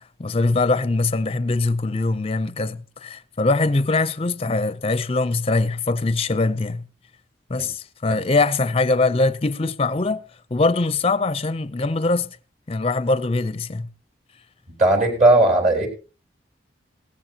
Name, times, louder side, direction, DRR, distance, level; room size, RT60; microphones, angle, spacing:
voice 1, 0.2-6.8 7.5-10.2 10.5-12.4 12.7-13.9, left 3 dB, 30° left, 0.6 m, -22 dB
voice 2, 14.8-15.9, right 2 dB, 45° right, 4.2 m, -17 dB
17.5 x 15.5 x 2.9 m
head